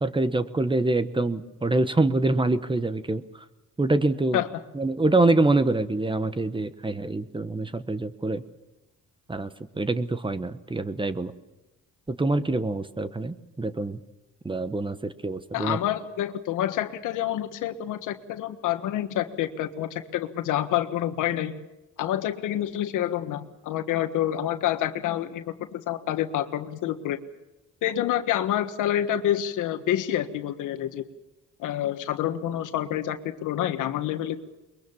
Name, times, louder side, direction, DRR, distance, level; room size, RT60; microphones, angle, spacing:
voice 1, 0.0-3.2 3.8-4.4 4.7-8.4 9.3-9.5 9.8-11.3 12.1-14.0 14.4-15.8, right 2 dB, 15° right, 13 dB, 1.2 m, -25 dB
voice 2, 15.5-21.5 22.0-27.2 27.8-31.1 31.6-34.4, left 12 dB, 85° left, 9 dB, 1.5 m, -28 dB
22.5 x 22.0 x 7.2 m, 1.0 s
cardioid pair, 90°, 30 cm